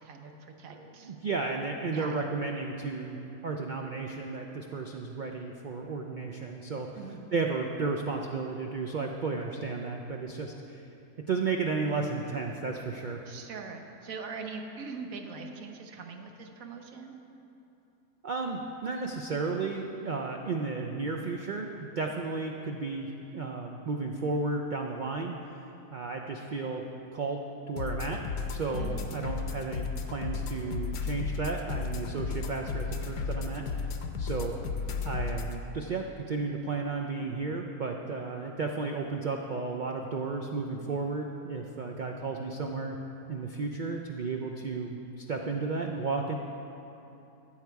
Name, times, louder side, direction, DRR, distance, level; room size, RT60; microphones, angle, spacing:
voice 1, 0.0-1.1 1.9-2.2 6.9-7.3 13.3-17.2 28.8-29.1, right 4 dB, 65° right, 4 dB, 1.3 m, -42 dB
voice 2, 0.7-3.2 3.4-6.9 7.3-10.8 11.3-13.2 18.2-25.3 25.9-26.8 27.1-28.2 28.5-29.9 30.1-33.6 34.2-34.6 35.0-43.0 43.3-46.4, right 4 dB, 85° right, 2 dB, 0.4 m, -33 dB
sound 1, 27.8-35.6, left 5 dB, 80° left, 1.2 m, -34 dB
14.5 x 7.3 x 4.6 m, 2.9 s
omnidirectional pair, 1.6 m